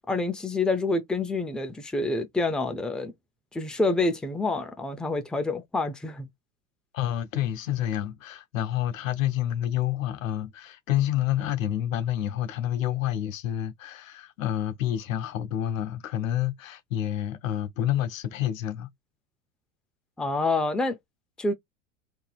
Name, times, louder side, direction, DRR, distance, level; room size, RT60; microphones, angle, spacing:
voice 1, 0.1-3.1 3.5-6.3 20.2-21.0 21.4-21.5, left 3 dB, ahead, 0.5 m, -27 dB
voice 2, 6.9-18.9, left 12 dB, 80° left, 0.7 m, -28 dB
3.8 x 2.7 x 2.3 m
hypercardioid pair, 85°, 39 cm